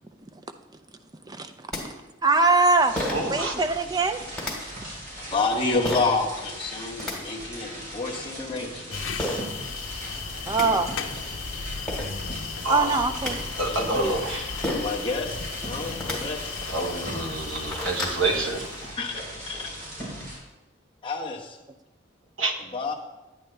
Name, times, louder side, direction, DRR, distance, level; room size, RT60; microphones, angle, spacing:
sound 1, 1.7-1.8 3.0-3.3 4.3-4.5 5.8-6.1 6.8-7.1 9.2-9.4 10.1-10.2 10.5-10.7 11.5-11.6 11.9-12.1 12.9-13.3 14.6-14.9 15.9-16.2 16.8-16.9 17.3-18.2, left 1 dB, 5° left, 2.2 m, -30 dB
voice 1, 2.2-3.0 3.3-4.2 10.5-10.9 12.7-13.4 13.9-14.3, right 3 dB, 20° right, 8 dB, 0.5 m, -22 dB
sound 2, 2.8-20.4, equal, 50° right, 3.9 m, -39 dB
voice 2, 3.1-3.5 12.6-13.0 13.6-14.8 16.7-18.7 22.4-22.5, right 2 dB, 75° right, 3 dB, 1.3 m, -28 dB
voice 3, 5.2-9.4 13.6-14.2 14.7-17.1 19.0-20.1 21.0-21.6 22.7-22.9, left 3 dB, 25° left, -2 dB, 1.2 m, -30 dB
sound 3, 8.9-18.9, left 5 dB, 90° left, 0.7 m, -36 dB
10.5 x 9.3 x 3.3 m, 1.1 s
head